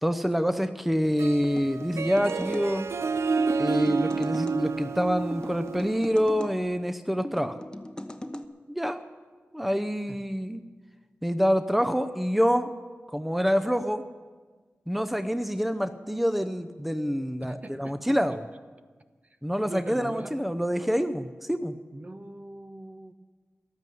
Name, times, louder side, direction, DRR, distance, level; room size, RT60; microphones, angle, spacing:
voice 1, 0.0-2.9 3.6-7.6 8.7-9.0 9.5-10.6 11.2-12.7 13.1-14.0 14.9-18.4 19.4-21.7, equal, 5° right, 9 dB, 0.7 m, -26 dB
Harp, 1.1-6.6, right 4 dB, 85° right, 0.4 m, -30 dB
sound 1, 1.4-2.7 3.4-4.6 5.3-6.5 7.2-8.5, left 1 dB, 20° left, 1.0 m, -39 dB
voice 2, 17.4-18.4 19.6-20.4 21.9-23.1, right 2 dB, 35° right, 9 dB, 1.0 m, -41 dB
13.5 x 11.0 x 7.7 m, 1.4 s
cardioid pair, 40°, 5 cm